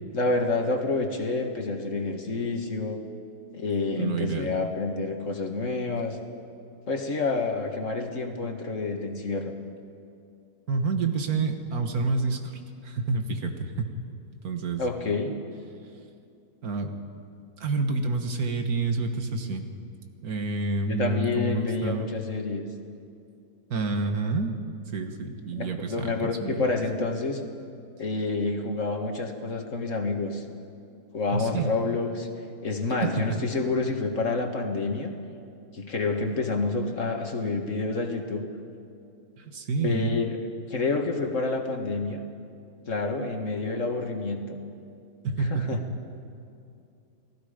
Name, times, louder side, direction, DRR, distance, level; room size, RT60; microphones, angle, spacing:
voice 1, 0.1-3.0 3.5-6.2 6.9-9.5 14.8-15.3 20.9-22.7 25.6-27.4 28.0-30.4 31.1-32.3 32.6-35.1 35.7-38.4 39.8-40.4 40.7-42.2 42.9-44.6 45.5-45.8, left 3 dB, 55° left, 4 dB, 2.0 m, -28 dB
voice 2, 4.0-4.5 10.7-14.0 14.4-14.8 16.6-16.9 17.6-19.7 20.2-22.1 23.7-24.5 24.9-26.6 31.3-31.8 33.0-33.4 39.4-40.1 45.2-45.9, right 4 dB, 75° right, 5 dB, 1.9 m, -28 dB
29.5 x 18.5 x 5.1 m, 2.6 s
omnidirectional pair, 1.6 m